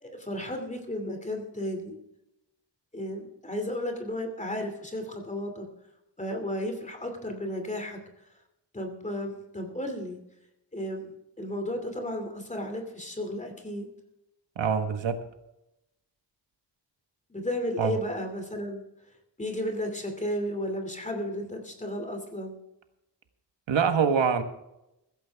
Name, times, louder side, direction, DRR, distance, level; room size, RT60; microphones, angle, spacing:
voice 1, 0.0-1.9 2.9-5.7 6.2-8.0 8.7-10.2 10.7-13.9 17.3-18.8 19.4-22.5, left 1 dB, 15° left, 4 dB, 2.7 m, -33 dB
voice 2, 14.6-15.1 17.8-18.0 23.7-24.4, right 6 dB, 80° right, 7 dB, 1.5 m, -24 dB
16.0 x 14.5 x 3.5 m, 0.87 s
wide cardioid pair, 160°, 44 cm